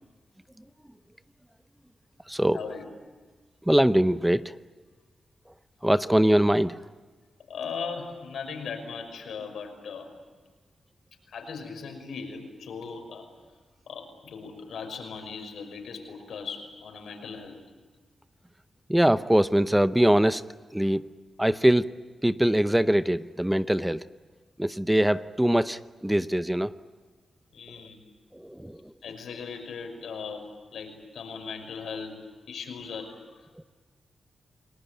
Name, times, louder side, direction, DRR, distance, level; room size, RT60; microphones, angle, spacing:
voice 1, 2.5-2.9 7.5-10.1 11.3-13.3 13.9-17.6 27.5-28.0 29.0-33.7, left 5 dB, 90° left, 4 dB, 5.8 m, -38 dB
voice 2, 3.7-4.5 5.8-6.8 18.9-20.4 20.7-21.0 21.4-21.9 22.2-24.0 24.6-26.7 28.3-28.8, right 1 dB, 5° right, 13 dB, 0.7 m, -22 dB
29.0 x 20.0 x 9.4 m, 1.4 s
cardioid pair, 90°, 0 cm